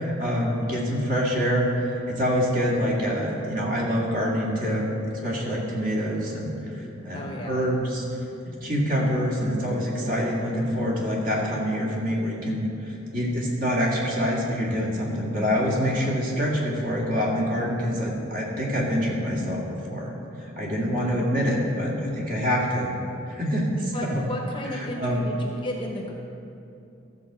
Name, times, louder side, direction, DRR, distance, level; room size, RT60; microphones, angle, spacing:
voice 1, 0.0-1.7 2.1-4.9 5.2-8.0 8.6-20.1 20.4-22.9 23.3-24.2 24.8-25.3, equal, 45° right, -4 dB, 2.1 m, -26 dB
voice 2, 7.1-7.6 21.2-21.8 23.9-26.1, left 1 dB, 25° left, 0 dB, 1.0 m, -34 dB
13.5 x 4.8 x 7.3 m, 2.7 s
head